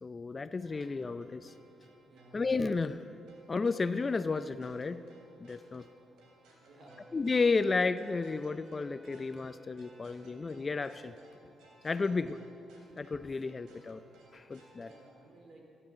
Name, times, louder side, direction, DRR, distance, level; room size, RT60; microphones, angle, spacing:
voice 1, 0.0-1.5 2.3-3.0 3.5-5.0 5.4-5.9 7.1-11.1 11.8-12.3 13.0-14.0 14.3-14.9, left 4 dB, 30° left, 13 dB, 0.5 m, -32 dB
sound 1, 0.6-15.2, right 2 dB, 85° right, 3.2 m, -62 dB
voice 2, 2.0-2.5 6.6-7.1 12.0-12.3 14.8-15.8, right 2 dB, 50° right, 1 dB, 3.7 m, -56 dB
Wind instrument woodwind instrument, 6.9-11.2, right 1 dB, 10° right, 1.1 m, -57 dB
16.0 x 11.0 x 7.5 m, 2.7 s
cardioid pair, 90°, 0 cm